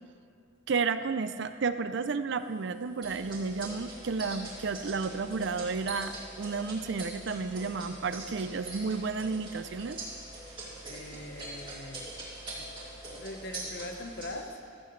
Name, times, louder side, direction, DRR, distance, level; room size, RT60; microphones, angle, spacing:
voice 1, 0.7-10.0, right 4 dB, 60° right, 11 dB, 0.5 m, -32 dB
sound 1, 3.0-14.4, right 2 dB, 25° right, 2.6 m, -43 dB
voice 2, 10.9-12.1 12.5-12.7 13.0-14.6, left 1 dB, 50° left, 4 dB, 1.1 m, -42 dB
15.5 x 15.0 x 3.2 m, 2.3 s
head